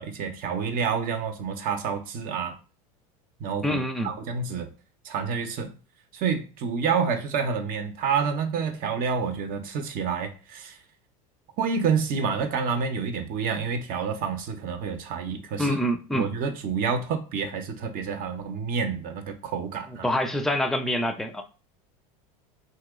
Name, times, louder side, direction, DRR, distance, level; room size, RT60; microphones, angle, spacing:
voice 1, 0.0-2.5 3.4-3.8 4.0-4.7 5.0-5.7 6.1-10.8 11.6-15.8 16.1-20.1, right 6 dB, 50° right, 0.8 m, -28 dB
voice 2, 3.6-4.1 15.6-16.3 20.0-21.4, equal, ahead, 0.4 m, -26 dB
2.9 x 2.9 x 3.6 m
supercardioid pair, 100°, 19 cm